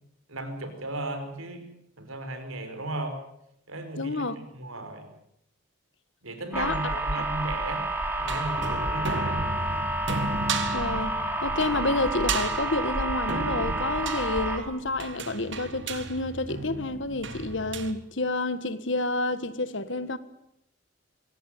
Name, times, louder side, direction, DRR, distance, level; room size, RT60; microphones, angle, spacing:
voice 1, 0.3-1.7 2.0-3.2 3.7-4.2 4.5-5.1 6.2-7.9 8.2-9.4, right 2 dB, 80° right, 5.0 m, -35 dB
voice 2, 4.0-4.4 6.5-7.0 10.7-11.1 11.4-20.2, left 2 dB, 60° left, 1.6 m, -29 dB
sound 1, 6.5-14.6, right 1 dB, 10° right, 3.0 m, -29 dB
sound 2, 7.8-17.9, right 3 dB, 55° right, 1.9 m, -34 dB
24.0 x 17.0 x 9.2 m
head